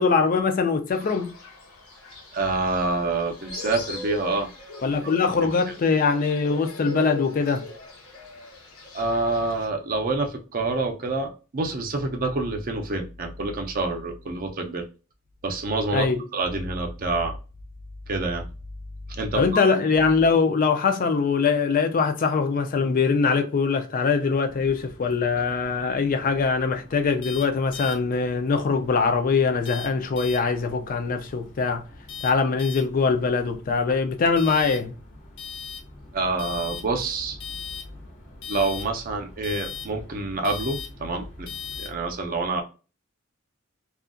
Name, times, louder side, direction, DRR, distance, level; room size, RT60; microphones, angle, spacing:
voice 1, 0.0-1.4 4.8-7.6 15.9-16.2 19.3-31.8 32.2-34.9, left 4 dB, 40° left, 0.4 m, -22 dB
Fowl, 0.9-9.7, left 3 dB, 90° left, 1.0 m, -40 dB
voice 2, 2.3-4.5 4.8-5.1 8.9-14.9 15.4-16.1 16.3-17.4 18.1-18.4 19.1-19.6 36.1-37.4 38.5-41.5 41.8-42.6, right 3 dB, 40° right, 0.5 m, -27 dB
sound 1, 24.5-41.9, left 6 dB, 60° left, 0.7 m, -41 dB
2.7 x 2.4 x 2.4 m
head